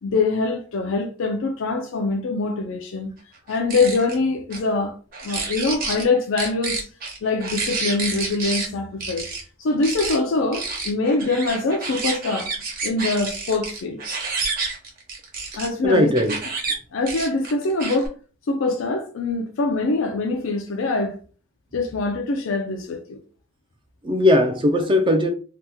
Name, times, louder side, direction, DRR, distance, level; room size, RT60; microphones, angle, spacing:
voice 1, 0.0-3.1 3.5-5.0 5.2-6.9 7.2-9.3 9.6-12.5 12.8-14.0 15.6-16.1 16.9-18.1 18.5-21.2 21.7-23.2, left 3 dB, 75° left, 0.4 m, -24 dB
sound 1, 3.5-4.2 4.5-4.6 5.1-6.0 6.4-8.7 9.0-9.4 9.8-10.2 10.5-15.7 16.1-16.7 17.1-18.1, right 4 dB, 45° right, 0.9 m, -29 dB
voice 2, 15.8-16.4 24.0-25.3, left 1 dB, 25° right, 0.4 m, -18 dB
2.8 x 2.2 x 3.4 m
head